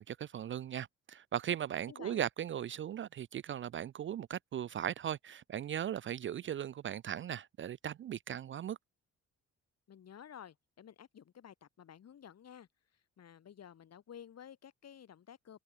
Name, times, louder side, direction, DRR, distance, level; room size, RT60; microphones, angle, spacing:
voice 1, 0.0-8.8, right 10 dB, 40° right, 0.4 m, -38 dB
voice 2, 1.9-2.2 9.9-12.7 13.2-15.6, left 9 dB, 55° left, 3.7 m, -53 dB
cardioid pair, 90°, 30 cm